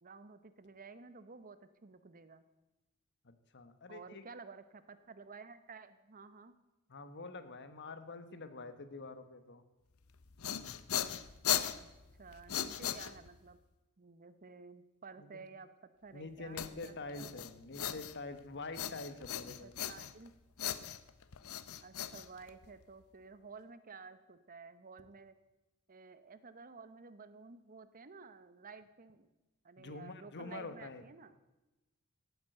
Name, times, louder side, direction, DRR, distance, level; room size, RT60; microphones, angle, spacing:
voice 1, 0.0-2.4 3.9-6.6 11.7-13.6 14.0-15.7 16.0-17.4 19.6-20.3 21.8-25.3 25.9-29.3 29.6-31.4, right 4 dB, 40° right, 12 dB, 0.8 m, -53 dB
voice 2, 3.2-4.2 6.9-9.6 15.2-15.4 16.1-19.9 29.8-31.0, left 3 dB, 55° left, 10 dB, 1.4 m, -46 dB
sound 1, 10.1-13.5 16.6-18.4 18.7-20.3 20.6-22.8, left 10 dB, 70° left, 0.7 m, -38 dB
16.5 x 9.3 x 7.9 m, 1.0 s
head